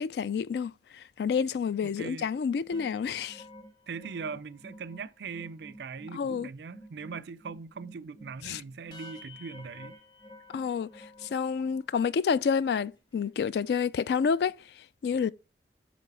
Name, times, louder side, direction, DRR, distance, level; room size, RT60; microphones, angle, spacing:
voice 1, 0.0-3.4 6.1-6.5 8.4-8.6 10.5-14.6 15.0-15.3, left 6 dB, 70° left, 0.3 m, -29 dB
sound 1, 2.6-12.1 12.5-12.7 13.0-13.3, equal, 25° left, 1.1 m, -51 dB
voice 2, 3.9-10.0, right 5 dB, 75° right, 0.4 m, -40 dB
7.9 x 3.1 x 5.4 m
head